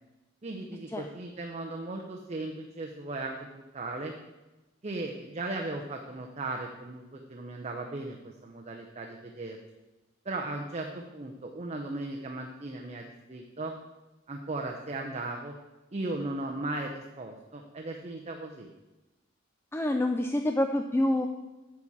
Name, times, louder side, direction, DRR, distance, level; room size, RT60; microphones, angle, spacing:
voice 1, 0.4-4.1 4.8-9.6 10.3-13.7 14.3-15.5 15.9-18.7, right 2 dB, 35° right, 2 dB, 0.7 m, -37 dB
voice 2, 19.7-21.3, left 1 dB, 10° left, 6 dB, 0.3 m, -27 dB
9.5 x 4.1 x 7.3 m, 1.1 s
head